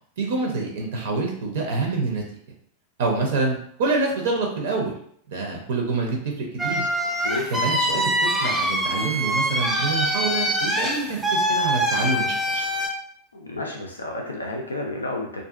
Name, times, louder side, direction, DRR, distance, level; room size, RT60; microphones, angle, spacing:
voice 1, 0.2-2.2 3.0-5.0 5.3-6.9 7.5-12.6, right 3 dB, 55° right, 1 dB, 0.5 m, -26 dB
sound 1, 6.6-12.9, equal, 5° right, 0.4 m, -24 dB
voice 2, 7.2-7.5 13.3-15.4, left 2 dB, 75° left, 1 dB, 0.4 m, -31 dB
2.5 x 2.4 x 2.4 m, 0.65 s
figure-of-eight pair, 90°, 0 cm